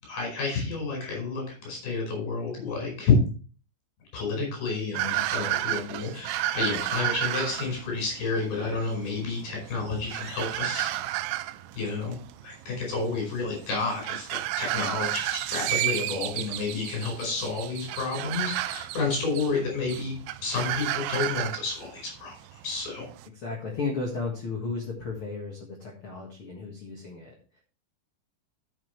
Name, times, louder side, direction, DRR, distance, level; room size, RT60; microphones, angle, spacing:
voice 1, 0.0-3.1 4.1-10.9 11.7-12.2 12.4-22.4 22.6-23.0, left 4 dB, 55° left, 0 dB, 6.7 m, -30 dB
sound 1, 4.9-23.3, right 15 dB, 90° right, 3.0 m, -32 dB
voice 2, 23.3-27.6, left 4 dB, 75° left, 0 dB, 1.2 m, -34 dB
12.5 x 7.4 x 3.2 m, 0.38 s
omnidirectional pair, 5.2 m